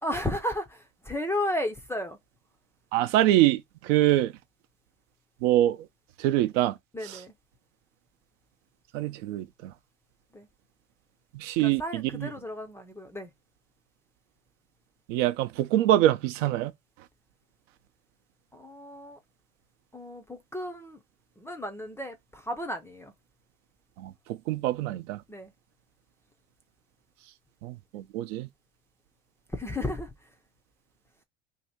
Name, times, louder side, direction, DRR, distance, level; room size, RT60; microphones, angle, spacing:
voice 1, 0.0-2.2 6.9-7.3 10.3-10.5 11.6-13.3 18.5-19.2 19.9-21.0 21.4-23.1 25.3-25.5 29.5-30.1, left 1 dB, 5° left, 0.4 m, -33 dB
voice 2, 2.9-4.3 5.4-5.8 6.2-6.8 7.0-7.2 8.9-9.7 11.3-12.3 15.1-16.7 24.0-25.2 27.6-28.5, right 14 dB, 75° right, 0.6 m, -25 dB
2.7 x 2.7 x 4.3 m
supercardioid pair, 110°, 38 cm